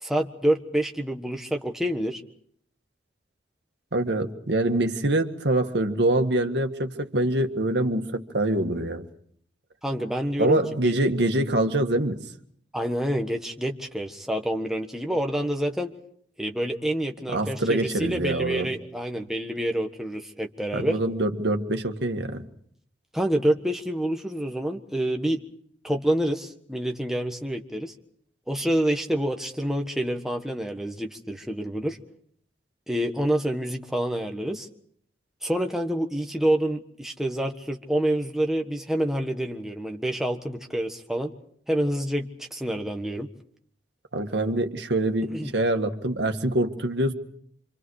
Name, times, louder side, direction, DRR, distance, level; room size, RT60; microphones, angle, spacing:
voice 1, 0.0-2.2 9.8-10.9 12.7-15.9 16.4-21.0 23.1-25.4 25.8-27.9 28.5-32.0 32.9-34.7 35.4-41.3 41.7-43.3 45.3-45.5, right 1 dB, ahead, 1.4 m, -27 dB
voice 2, 3.9-9.1 10.4-12.3 17.3-18.7 20.7-22.5 44.1-47.1, right 1 dB, 70° right, 1.8 m, -25 dB
27.0 x 26.5 x 4.8 m
head